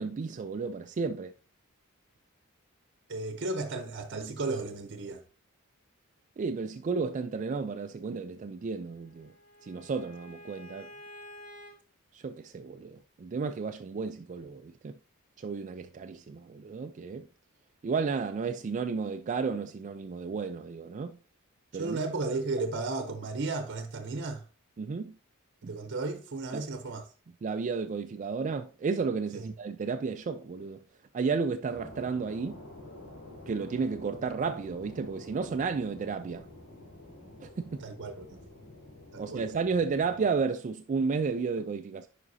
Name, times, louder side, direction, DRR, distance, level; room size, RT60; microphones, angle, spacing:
voice 1, 0.0-1.3 4.1-4.3 6.4-9.3 9.6-10.9 12.1-14.9 15.4-17.3 17.8-21.2 21.7-22.0 24.8-25.1 25.6-25.7 26.5-26.6 27.4-30.8 31.1-32.6 33.5-36.5 37.4-37.8 39.2-42.1, right 5 dB, 35° right, 0.3 m, -32 dB
voice 2, 3.1-5.2 21.7-24.4 25.6-27.1 29.3-29.5 37.8-38.4 39.1-39.4, right 3 dB, 55° right, 0.8 m, -34 dB
Bowed string instrument, 8.6-11.8, left 1 dB, 40° left, 2.1 m, -50 dB
sound 1, 31.7-40.4, left 1 dB, 70° left, 3.4 m, -49 dB
9.7 x 5.0 x 2.7 m
head